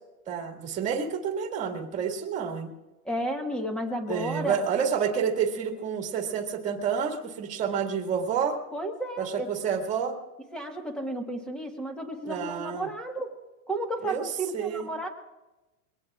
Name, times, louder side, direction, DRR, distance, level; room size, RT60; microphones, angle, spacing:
voice 1, 0.3-2.7 4.1-8.6 9.2-10.2 12.2-12.9 14.0-14.9, right 7 dB, 15° right, 3 dB, 2.0 m, -29 dB
voice 2, 3.0-4.6 8.7-9.5 10.5-13.3 13.7-15.1, right 1 dB, ahead, 4 dB, 1.3 m, -32 dB
23.0 x 18.0 x 2.4 m, 1.0 s
supercardioid pair, 160°, 44 cm